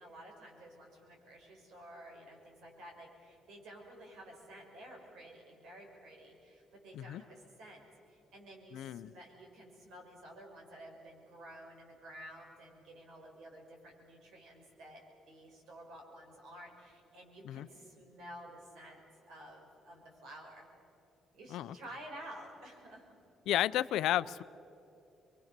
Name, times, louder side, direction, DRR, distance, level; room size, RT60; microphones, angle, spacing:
voice 1, 0.0-15.0 15.3-19.0 19.3-20.7 21.3-23.1, right 1 dB, 80° right, 0 dB, 5.9 m, -52 dB
voice 2, 8.7-9.1 17.4-17.7 21.5-21.8 23.5-24.4, left 13 dB, 80° left, 16 dB, 0.5 m, -32 dB
25.5 x 23.0 x 6.7 m, 2.9 s
cardioid pair, 150°, 0 cm